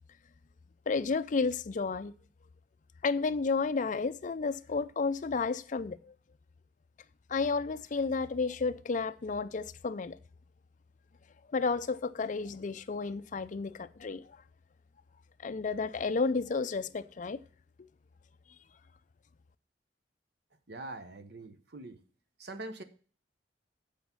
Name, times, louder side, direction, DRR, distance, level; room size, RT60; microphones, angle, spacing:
voice 1, 0.9-2.1 3.0-6.1 7.3-10.2 11.5-14.2 15.4-17.4, left 4 dB, 45° left, 0.5 m, -32 dB
voice 2, 20.7-22.0 22.4-22.8, right 2 dB, 65° right, 1.0 m, -43 dB
8.3 x 5.1 x 7.2 m
head